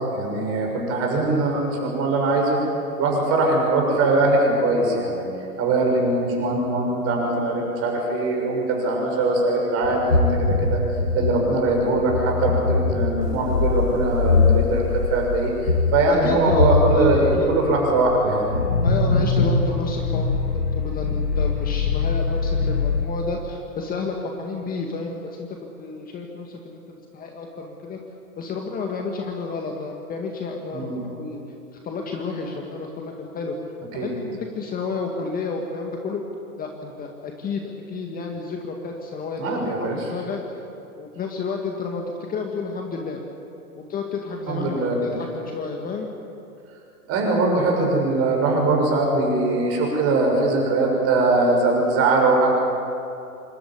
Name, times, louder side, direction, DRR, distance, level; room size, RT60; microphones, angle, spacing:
voice 1, 0.1-2.6 3.0-5.2 5.6-10.8 11.1-15.5 15.9-18.5 30.7-31.0 34.0-34.1 39.4-40.0 44.5-45.0 47.1-52.5, right 2 dB, 30° right, 0 dB, 6.7 m, -21 dB
sound 1, 9.8-23.0, left 4 dB, 90° left, 2.5 m, -22 dB
voice 2, 16.1-17.5 18.8-25.5 25.8-26.8 27.1-28.0 28.4-31.4 31.8-33.6 33.9-36.2 36.6-39.6 39.9-40.4 41.0-43.2 43.8-46.1, left 4 dB, 20° left, 2 dB, 1.9 m, -31 dB
26.5 x 13.0 x 10.0 m, 2.7 s
hypercardioid pair, 125°, 46 cm